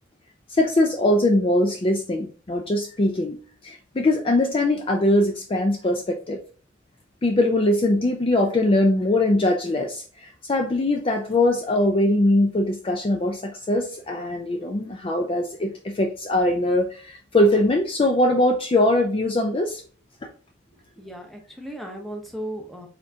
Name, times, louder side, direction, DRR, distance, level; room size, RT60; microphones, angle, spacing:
voice 1, 0.5-6.4 7.2-10.0 10.5-19.8, left 1 dB, 30° left, 3 dB, 0.4 m, -21 dB
voice 2, 20.9-22.9, right 1 dB, ahead, 1 dB, 0.8 m, -36 dB
4.4 x 3.6 x 2.8 m, 0.39 s
head